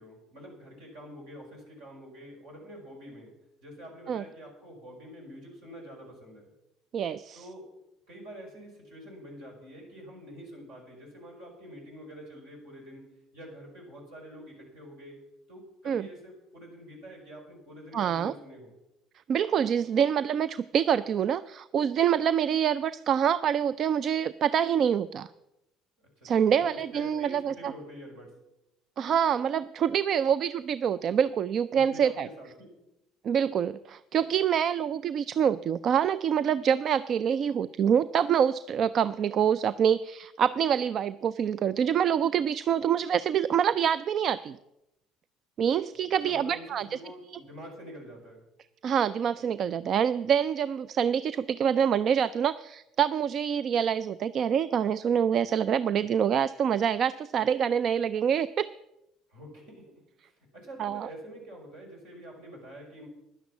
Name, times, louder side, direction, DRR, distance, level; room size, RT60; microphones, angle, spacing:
voice 1, 0.0-3.4 3.6-6.5 7.3-7.7 8.1-15.2 15.5-18.7 26.2-28.4 31.7-32.8 46.2-48.5 59.3-63.1, equal, 75° right, -1 dB, 5.5 m, -46 dB
voice 2, 6.9-7.4 15.9-16.1 17.9-18.3 19.3-25.3 26.2-27.7 29.0-32.3 33.2-44.6 45.6-46.9 48.8-58.7 60.8-61.1, right 8 dB, 50° right, 17 dB, 0.4 m, -26 dB
11.0 x 10.5 x 7.1 m, 0.89 s
hypercardioid pair, 65°, 0 cm